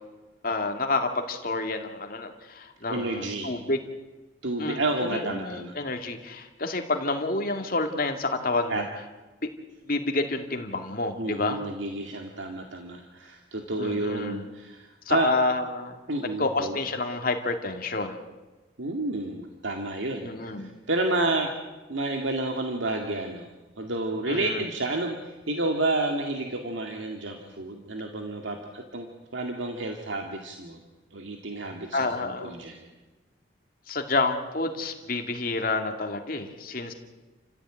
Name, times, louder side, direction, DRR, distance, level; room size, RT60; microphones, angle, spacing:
voice 1, 0.4-3.8 4.6-4.8 5.1-8.9 9.4-9.5 9.8-11.6 13.8-14.5 15.1-16.0 16.4-18.2 20.2-20.7 24.3-24.6 31.9-32.5 33.9-36.9, left 3 dB, 45° left, 5 dB, 2.3 m, -29 dB
voice 2, 2.9-3.6 4.4-5.7 8.7-8.8 11.2-15.3 16.1-16.8 18.8-20.3 20.6-21.5 21.9-23.5 23.8-29.1 29.3-30.8 31.1-32.9, right 2 dB, 75° right, 3 dB, 2.1 m, -30 dB
29.5 x 15.0 x 9.1 m, 1.2 s
head